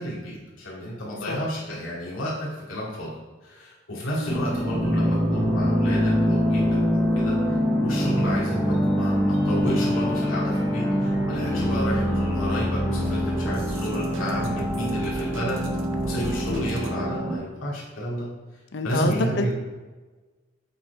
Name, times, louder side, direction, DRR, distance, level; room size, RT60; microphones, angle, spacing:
voice 1, 0.0-3.1 3.4-15.6 16.0-18.3 18.8-19.5, equal, 85° left, -7 dB, 2.3 m, -31 dB
sound 1, 4.0-16.9, right 2 dB, 80° right, 0.8 m, -41 dB
voice 2, 4.1-4.4 11.5-11.9 16.4-16.8 18.7-19.5, left 3 dB, 60° left, 6 dB, 0.6 m, -29 dB
sound 2, 4.3-17.3, equal, ahead, 1.0 m, -24 dB
8.2 x 4.3 x 4.7 m, 1.3 s
head